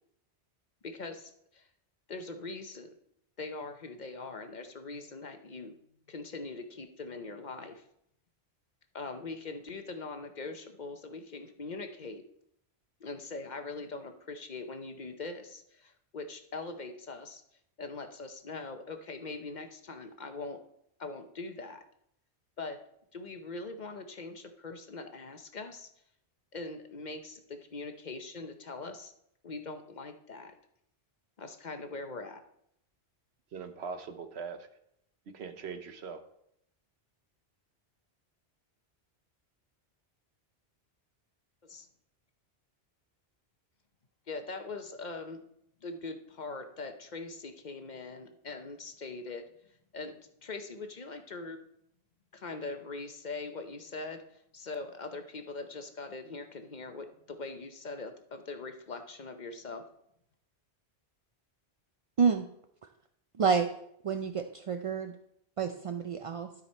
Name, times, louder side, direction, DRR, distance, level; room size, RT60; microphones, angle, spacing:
voice 1, 0.8-1.7 2.1-2.9 3.4-5.8 6.1-7.8 8.9-12.2 13.0-17.4 17.8-20.6 21.0-21.8 22.6-22.8 23.1-25.9 26.5-29.1 29.4-30.5 31.4-32.4 41.6-41.9 44.3-45.4 45.8-49.5 49.9-51.6 52.3-59.8, left 3 dB, 45° left, 6 dB, 0.8 m, -42 dB
voice 2, 33.5-34.7 35.3-36.2, right 5 dB, 75° right, 8 dB, 1.1 m, -41 dB
voice 3, 63.4-63.7 64.0-65.2 65.6-66.5, right 6 dB, 50° right, 6 dB, 0.4 m, -28 dB
12.5 x 5.2 x 4.3 m, 0.74 s
omnidirectional pair, 1.1 m